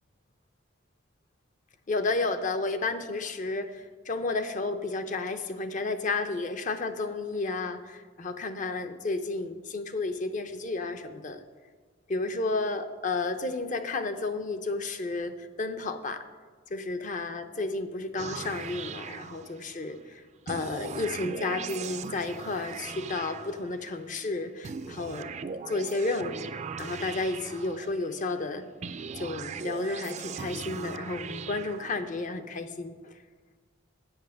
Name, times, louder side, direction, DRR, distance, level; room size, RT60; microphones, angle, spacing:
voice 1, 1.9-11.4 12.1-16.2 16.7-20.2 20.5-25.3 25.7-26.5 26.8-28.6 29.2-32.9, left 3 dB, 40° left, 9 dB, 0.6 m, -32 dB
sound 1, 18.2-19.9 20.5-24.0 24.6-28.2 28.8-32.3, right 5 dB, 35° right, 0.4 m, -39 dB
8.3 x 7.2 x 6.4 m, 1.4 s
head